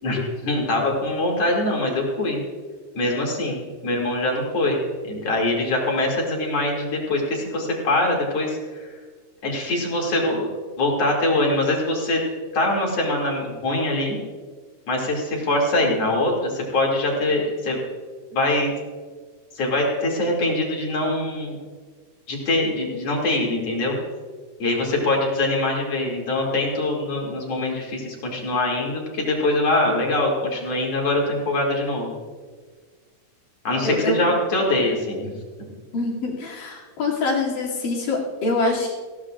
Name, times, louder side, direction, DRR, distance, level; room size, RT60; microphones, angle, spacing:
voice 1, 0.0-2.4 2.9-8.9 9.4-10.5 10.8-12.2 12.5-14.2 14.9-17.8 18.3-18.7 19.5-21.6 22.3-24.0 24.6-32.1 33.6-35.3, left 2 dB, 50° left, -1 dB, 3.5 m, -23 dB
voice 2, 33.8-34.3 35.9-38.9, left 2 dB, 75° left, -3 dB, 4.2 m, -25 dB
19.5 x 16.0 x 2.5 m, 1.5 s
omnidirectional pair, 3.8 m